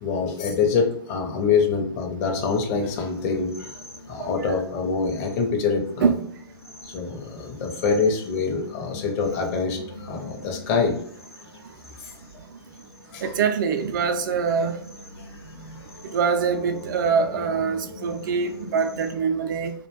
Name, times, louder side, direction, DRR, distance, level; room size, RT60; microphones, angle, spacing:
voice 1, 0.0-3.7 4.1-6.1 6.8-11.0 12.0-12.1 13.1-13.3 15.5-15.8, left 5 dB, 40° left, 0.6 m, -25 dB
sound 1, 2.3-19.1, left 2 dB, 90° left, 0.5 m, -44 dB
voice 2, 13.2-14.8 16.1-19.7, right 6 dB, 55° right, 0.4 m, -24 dB
2.3 x 2.1 x 3.0 m
figure-of-eight pair, 110°, 13 cm